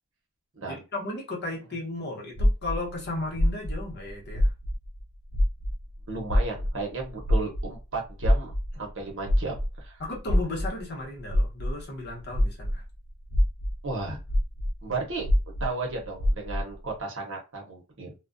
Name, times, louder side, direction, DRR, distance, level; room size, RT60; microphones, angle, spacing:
voice 1, 0.7-4.5 10.0-12.8, left 2 dB, 50° left, 0.9 m, -35 dB
sound 1, 2.4-5.0 5.3-12.8 13.2-16.7, equal, 70° left, 0.5 m, -26 dB
voice 2, 6.1-10.0 13.8-14.2 14.8-15.3 15.6-18.1, right 3 dB, 60° right, 0.8 m, -34 dB
2.3 x 2.2 x 2.5 m
head